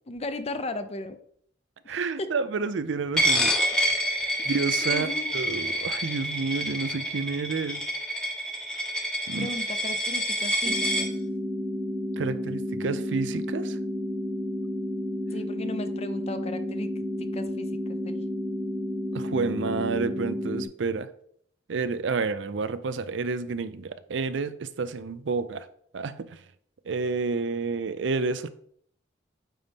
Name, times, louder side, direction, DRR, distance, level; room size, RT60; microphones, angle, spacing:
voice 1, 0.1-1.2 1.8-2.3 4.8-5.4 9.4-11.1 15.3-18.2, left 2 dB, 35° left, 0.6 m, -36 dB
voice 2, 1.9-3.5 4.5-7.9 9.3-9.5 12.2-13.8 19.1-21.1 21.7-25.7 25.9-26.4 26.9-28.5, right 4 dB, 75° right, 0.5 m, -30 dB
Coin (dropping), 3.2-11.1, equal, 5° left, 0.9 m, -27 dB
sound 1, 10.7-20.7, left 1 dB, 45° right, 1.0 m, -31 dB
9.1 x 4.1 x 3.5 m
head